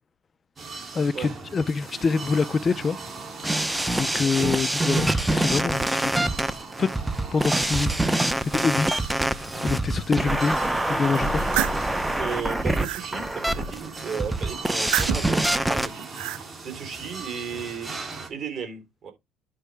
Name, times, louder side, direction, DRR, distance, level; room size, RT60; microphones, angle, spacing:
sound 1, 0.6-18.3, right 4 dB, 30° right, 2.9 m, -40 dB
voice 1, 0.9-3.0 3.6-6.2 6.8-6.9 7.3-8.9 9.2-10.6 10.9-11.4, left 4 dB, 25° left, 0.5 m, -26 dB
sound 2, 3.4-15.9, right 1 dB, 5° right, 0.8 m, -25 dB
voice 2, 4.0-4.5 12.2-19.1, right 6 dB, 45° right, 3.8 m, -35 dB
sound 3, 11.1-11.8 12.4-13.1 14.7-15.4 15.9-16.4, right 16 dB, 85° right, 0.4 m, -29 dB
10.0 x 5.4 x 3.4 m
cardioid pair, 125°, 0 cm